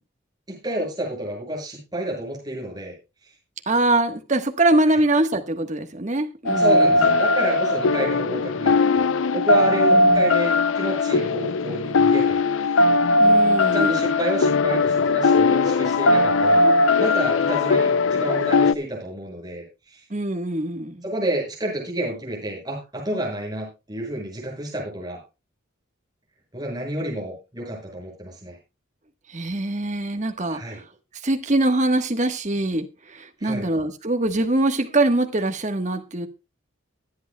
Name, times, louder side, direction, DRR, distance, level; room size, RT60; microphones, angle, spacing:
voice 1, 0.5-3.0 6.5-12.4 12.7-12.8 13.7-20.0 21.0-25.2 26.5-28.6 30.5-30.8 33.4-33.7, right 1 dB, 20° right, -2 dB, 6.3 m, -29 dB
voice 2, 3.7-7.1 9.9-10.2 13.2-14.0 20.1-21.0 29.3-30.8 31.2-36.3, right 2 dB, 35° right, 6 dB, 1.3 m, -23 dB
sound 1, 6.5-18.7, left 3 dB, 75° left, 0.5 m, -19 dB
23.5 x 8.3 x 2.2 m, 0.28 s
head